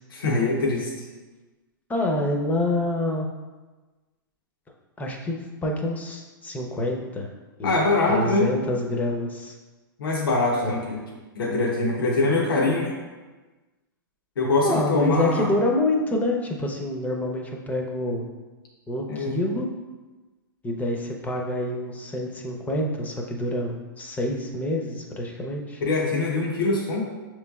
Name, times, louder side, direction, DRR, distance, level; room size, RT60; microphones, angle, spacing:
voice 1, 0.1-0.9 7.6-8.5 10.0-11.0 11.3-12.9 14.4-15.5 19.1-19.4 25.8-27.0, left 3 dB, 80° left, -2 dB, 0.9 m, -23 dB
voice 2, 1.9-3.3 5.0-7.3 7.6-9.5 10.6-10.8 14.6-18.3 18.9-19.7 20.6-25.8, left 1 dB, 15° left, 1 dB, 0.6 m, -27 dB
6.2 x 3.1 x 2.3 m, 1.2 s
hypercardioid pair, 125°, 12 cm